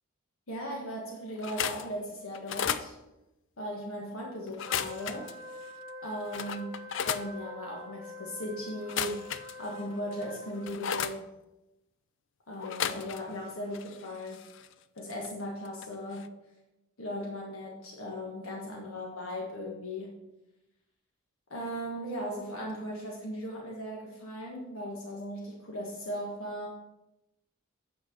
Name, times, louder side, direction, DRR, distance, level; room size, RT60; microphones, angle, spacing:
voice 1, 0.5-3.0 3.6-5.3 6.0-9.3 9.6-11.3 12.5-14.5 14.9-16.3 17.0-20.2 21.5-26.7, equal, 75° left, -2 dB, 1.5 m, -38 dB
sound 1, 1.4-1.9 2.3-2.9 4.5-5.3 5.9-6.0 6.3-7.3 8.8-9.8 10.2-11.2 12.6-13.4 13.7-15.3 15.7-15.9 16.1-16.3, left 8 dB, 55° left, 0.4 m, -35 dB
Wind instrument woodwind instrument, 4.6-10.9, left 1 dB, 15° right, 1.1 m, -46 dB
8.8 x 4.5 x 6.0 m, 0.94 s
head